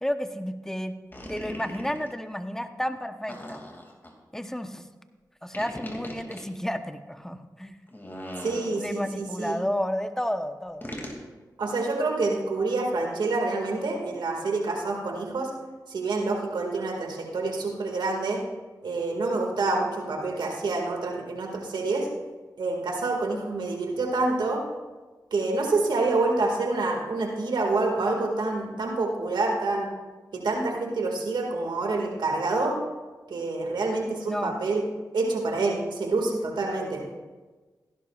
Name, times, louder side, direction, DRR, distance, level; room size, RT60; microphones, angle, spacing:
voice 1, 0.0-1.0 1.3-3.6 4.3-4.9 5.4-7.8 8.8-10.9 34.3-34.5, equal, 5° left, 8 dB, 1.0 m, -31 dB
sound 1, 1.1-2.1 3.3-4.1 5.5-6.4 7.9-9.1 10.8-11.2, equal, 30° left, 2.5 m, -39 dB
voice 2, 8.4-9.6 11.6-15.5 15.9-18.4 18.8-22.1 22.6-24.6 25.3-29.9 30.3-32.8 33.3-34.8 35.1-37.0, right 3 dB, 80° right, 1 dB, 2.1 m, -27 dB
16.5 x 11.0 x 2.5 m, 1.3 s
cardioid pair, 40°, 8 cm